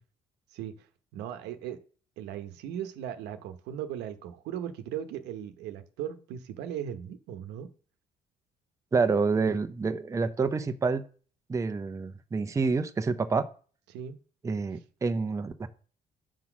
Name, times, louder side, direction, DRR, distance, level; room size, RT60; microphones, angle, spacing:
voice 1, 1.1-1.8 2.2-7.7 13.9-14.2, right 10 dB, 85° right, 8 dB, 1.0 m, -37 dB
voice 2, 8.9-11.0 11.5-13.5 14.4-15.7, right 4 dB, 20° right, 8 dB, 0.6 m, -28 dB
7.2 x 4.0 x 6.0 m, 0.41 s
cardioid pair, 110°, 17 cm